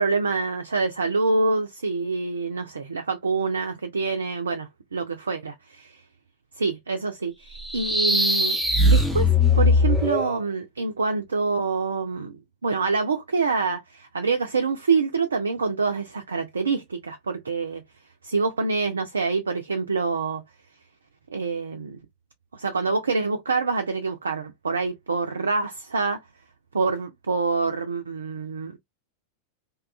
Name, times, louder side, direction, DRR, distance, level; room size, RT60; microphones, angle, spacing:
voice 1, 0.0-6.0 6.6-8.6 8.9-9.3 9.6-17.8 18.2-20.4 21.3-22.0 22.5-26.2 26.7-28.8, right 4 dB, 75° right, 0.4 m, -26 dB
sound 1, 7.5-10.4, left 2 dB, ahead, 0.7 m, -20 dB
2.8 x 2.3 x 2.3 m
figure-of-eight pair, 90°, 0 cm